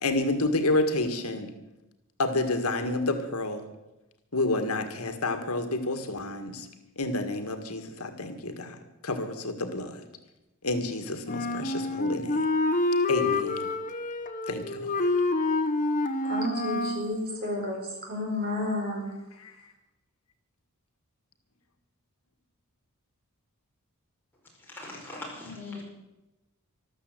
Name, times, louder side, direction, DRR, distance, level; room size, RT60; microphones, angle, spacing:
voice 1, 0.0-1.5 2.2-3.6 4.3-6.7 7.0-8.8 9.0-10.0 10.6-12.5 13.1-13.7 14.5-15.1 19.4-19.5, left 2 dB, 75° left, 8 dB, 1.8 m, -29 dB
Wind instrument woodwind instrument, 11.2-17.1, left 2 dB, 35° left, 1.1 m, -27 dB
voice 2, 16.3-17.8 18.1-19.1, left 2 dB, 45° right, 0 dB, 5.1 m, -31 dB
voice 3, 24.7-25.8, left 2 dB, 10° left, -3 dB, 5.1 m, -40 dB
14.0 x 12.5 x 7.8 m, 0.98 s
head